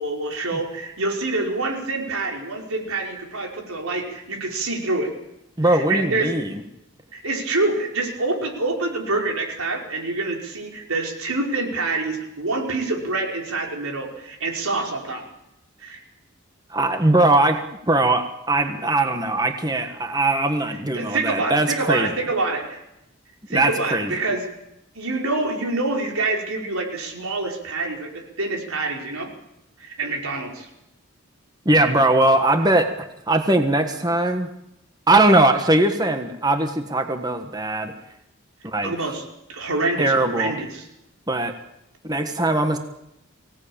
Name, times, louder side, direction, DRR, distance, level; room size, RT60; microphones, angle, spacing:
voice 1, 0.0-5.1 5.6-6.3 7.1-15.2 15.8-16.0 20.9-22.8 23.5-24.4 24.9-29.3 29.8-30.7 38.8-39.2 39.5-40.9, right 2 dB, 90° right, 1 dB, 5.2 m, -26 dB
voice 2, 5.6-6.5 16.7-17.6 17.9-22.1 23.5-24.1 31.6-32.9 33.3-34.5 35.1-37.9 38.6-38.9 40.0-40.5 41.3-41.5 42.0-42.8, right 2 dB, 20° right, 6 dB, 1.5 m, -20 dB
24.5 x 18.0 x 8.8 m, 0.85 s
head